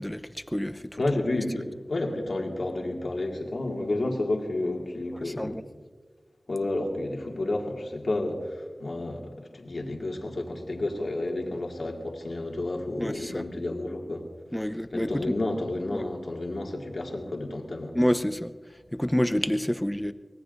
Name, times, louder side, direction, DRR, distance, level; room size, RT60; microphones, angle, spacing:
voice 1, 0.0-1.0 5.2-5.6 13.0-13.5 14.5-15.4 15.9-16.1 17.9-18.5 18.9-20.1, equal, 10° left, 0.7 m, -28 dB
voice 2, 1.0-5.6 6.5-14.3 14.9-17.9, left 2 dB, 75° left, 2.1 m, -31 dB
24.0 x 18.0 x 2.6 m
wide cardioid pair, 50°, 0 cm